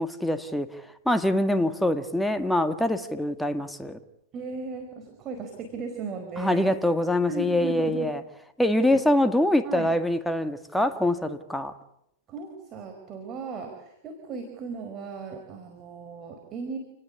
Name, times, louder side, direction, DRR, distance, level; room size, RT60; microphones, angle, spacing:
voice 1, 0.0-4.0 6.4-8.2 8.6-11.7, left 1 dB, 5° left, 1.9 m, -24 dB
voice 2, 4.3-6.7 7.3-8.1 8.9-9.0 9.6-9.9 12.3-16.8, right 4 dB, 30° right, 4.8 m, -36 dB
29.0 x 19.5 x 8.5 m
hypercardioid pair, 120°, 0 cm